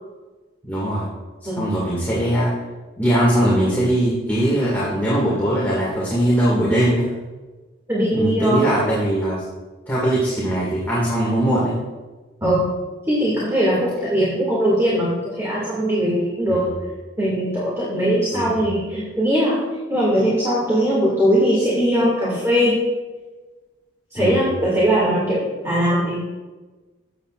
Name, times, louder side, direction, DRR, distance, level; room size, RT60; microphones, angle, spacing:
voice 1, 0.6-1.0 1.4-2.5 3.0-7.1 8.1-9.4 9.9-11.8 16.5-16.7 18.3-18.6 24.2-24.5, right 1 dB, 10° left, -8 dB, 2.0 m, -20 dB
voice 2, 7.9-8.7 12.4-12.7 13.1-16.7 17.2-19.6 19.9-22.7 24.1-26.2, equal, 15° right, -7 dB, 2.2 m, -20 dB
14.0 x 8.3 x 2.5 m, 1.2 s
head